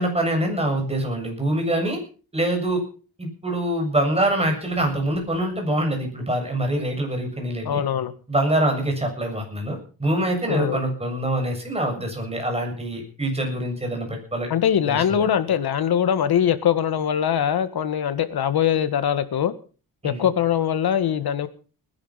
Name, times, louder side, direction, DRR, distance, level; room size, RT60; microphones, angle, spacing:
voice 1, 0.0-2.0 2.3-2.8 3.2-7.8 8.3-14.5 14.9-15.2 20.0-20.3, right 1 dB, 15° right, 3 dB, 7.4 m, -25 dB
voice 2, 7.7-8.1 10.5-10.8 14.5-19.5 20.0-21.5, left 9 dB, 75° left, 12 dB, 1.7 m, -22 dB
20.0 x 11.0 x 5.7 m, 0.38 s
cardioid pair, 110°, 37 cm